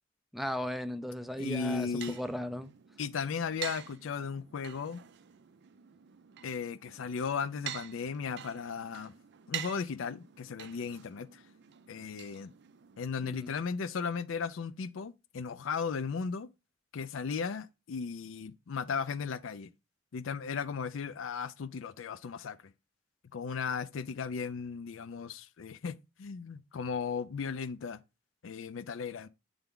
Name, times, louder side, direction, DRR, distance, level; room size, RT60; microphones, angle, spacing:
voice 1, 0.3-2.7 13.2-13.5, equal, ahead, 0.4 m, -36 dB
voice 2, 1.4-2.2 3.0-5.0 6.4-9.1 9.5-11.4 11.9-12.5 13.0-16.5 16.9-19.7 20.1-22.7 23.3-28.0 28.4-29.3, left 5 dB, 70° left, 0.4 m, -36 dB
sound 1, 1.4-13.0, right 11 dB, 60° right, 0.4 m, -47 dB
8.0 x 3.4 x 3.6 m
head